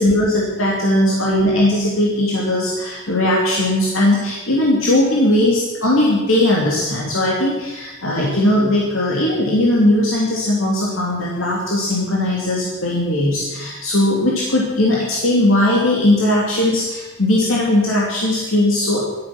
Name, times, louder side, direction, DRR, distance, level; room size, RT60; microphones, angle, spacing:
voice 1, 0.0-19.2, left 1 dB, 75° left, -4 dB, 2.8 m, -18 dB
14.0 x 12.5 x 6.0 m, 1.2 s
head